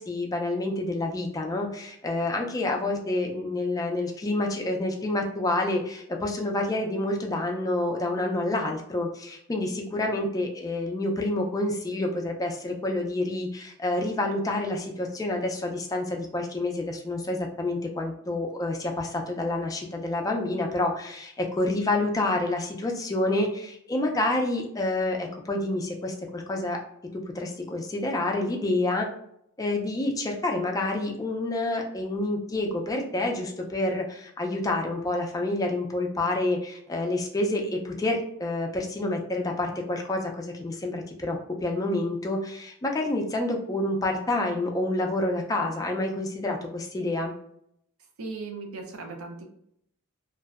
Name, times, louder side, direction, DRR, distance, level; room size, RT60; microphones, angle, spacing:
voice 1, 0.0-26.8 27.3-29.1 29.6-47.3, left 2 dB, 15° left, 1 dB, 0.3 m, -28 dB
voice 2, 48.2-49.4, right 3 dB, 65° right, 3 dB, 0.5 m, -37 dB
2.5 x 2.0 x 2.3 m, 0.72 s
head